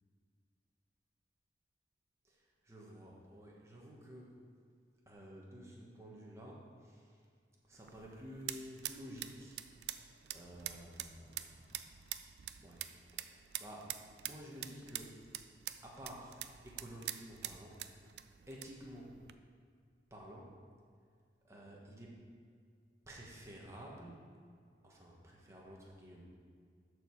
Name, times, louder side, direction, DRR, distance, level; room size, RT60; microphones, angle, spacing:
voice 1, 2.2-4.5 5.1-7.2 7.6-9.6 10.3-12.0 12.6-12.8 13.1-15.2 15.8-17.8 18.5-19.2 20.1-20.6 21.4-22.2 23.1-24.2 24.8-26.2, equal, 15° right, -3 dB, 1.4 m, -52 dB
sound 1, 7.7-19.3, right 12 dB, 70° right, 0.4 m, -47 dB
13.0 x 4.8 x 4.8 m, 2.1 s
head